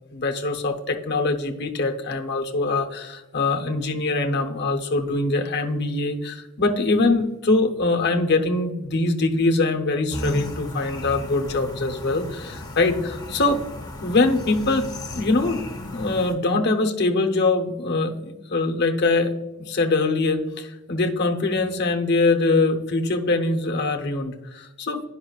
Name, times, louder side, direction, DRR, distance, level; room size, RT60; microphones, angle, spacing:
voice 1, 0.1-13.6 14.0-19.3 19.6-25.0, left 3 dB, 50° left, 4 dB, 0.8 m, -23 dB
sound 1, 10.1-16.3, left 1 dB, 20° left, 0.7 m, -34 dB
10.5 x 5.5 x 2.4 m, 1.0 s
head